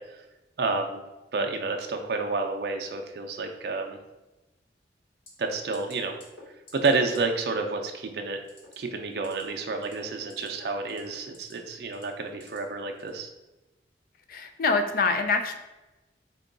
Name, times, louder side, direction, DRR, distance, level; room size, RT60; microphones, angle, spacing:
voice 1, 0.6-1.0 1.3-4.0 5.4-6.2 6.7-8.4 8.8-13.3, right 3 dB, 60° right, 4 dB, 0.4 m, -29 dB
sound 1, 5.3-5.5 5.7-5.9 6.2-6.4 6.7-6.9 7.1-7.2 8.4-8.7 9.1-9.4 9.8-10.5 10.8-11.5 11.9-12.6 13.0-13.2, left 2 dB, 85° left, 1.3 m, -50 dB
voice 2, 14.3-15.5, left 4 dB, 50° left, 7 dB, 0.3 m, -25 dB
3.6 x 2.3 x 3.7 m, 1.0 s
head